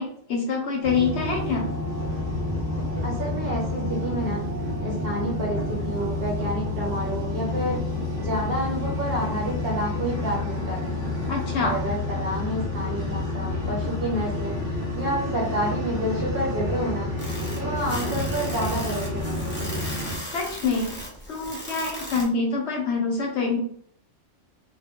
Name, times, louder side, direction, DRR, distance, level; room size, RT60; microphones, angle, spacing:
voice 1, 0.0-1.7 11.3-11.7 20.3-20.9 21.3-23.6, left 4 dB, 65° left, 0 dB, 0.9 m, -26 dB
sound 1, 0.8-20.1, left 2 dB, 25° right, 0.9 m, -29 dB
voice 2, 3.0-4.4 4.8-7.8 8.2-11.0 11.6-14.5 14.9-17.1 17.5-19.8, right 1 dB, 50° right, -2 dB, 1.1 m, -29 dB
sound 2, 17.2-22.2, equal, 10° left, 0.6 m, -37 dB
2.3 x 2.1 x 3.6 m, 0.64 s
omnidirectional pair, 1.3 m